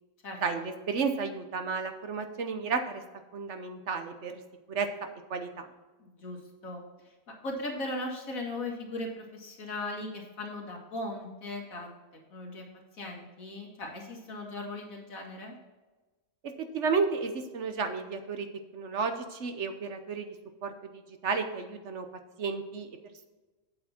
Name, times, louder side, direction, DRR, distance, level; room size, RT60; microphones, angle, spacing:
voice 1, 0.4-3.0 3.3-4.4 4.7-4.9 5.3-5.7 16.4-18.5 18.7-20.3 20.6-20.7 21.2-22.1 22.4-22.9, right 5 dB, 60° right, 7 dB, 1.1 m, -32 dB
voice 2, 6.0-6.8 7.4-11.9 12.3-12.6 13.0-15.6, left 2 dB, 75° left, 0 dB, 2.3 m, -38 dB
8.6 x 7.8 x 4.3 m, 1.2 s
omnidirectional pair, 1.4 m